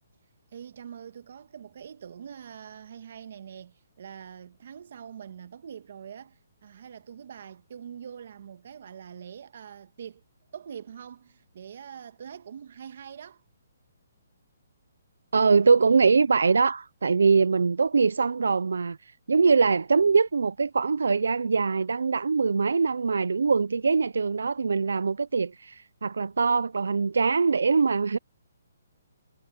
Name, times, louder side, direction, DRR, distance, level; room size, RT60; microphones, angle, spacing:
voice 1, 0.5-10.2 10.5-13.4, right 8 dB, 55° right, 1.6 m, -44 dB
voice 2, 15.3-19.0 19.3-28.2, right 4 dB, 85° right, 0.5 m, -23 dB
hypercardioid pair, 160°, 0 cm